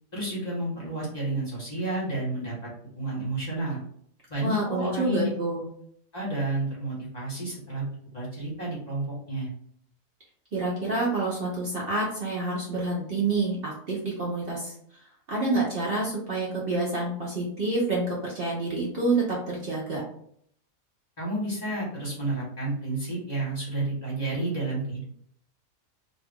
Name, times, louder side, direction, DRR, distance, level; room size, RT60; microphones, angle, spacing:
voice 1, 0.1-2.7 3.0-3.8 4.3-5.3 6.1-7.9 8.1-9.5 21.2-25.0, right 2 dB, 30° left, -6 dB, 1.1 m, -31 dB
voice 2, 4.4-5.6 10.5-14.7 15.3-20.0, right 2 dB, 50° right, -4 dB, 0.8 m, -28 dB
2.6 x 2.4 x 3.5 m, 0.67 s
omnidirectional pair, 1.4 m